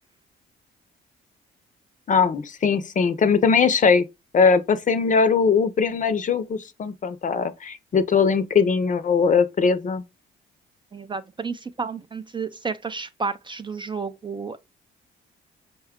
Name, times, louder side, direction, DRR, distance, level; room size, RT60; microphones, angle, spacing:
voice 1, 2.1-4.1 4.3-10.0, left 5 dB, 40° left, 0.6 m, -20 dB
voice 2, 10.9-14.6, right 5 dB, 25° right, 0.3 m, -31 dB
5.4 x 2.3 x 3.5 m
cardioid pair, 90°, 20 cm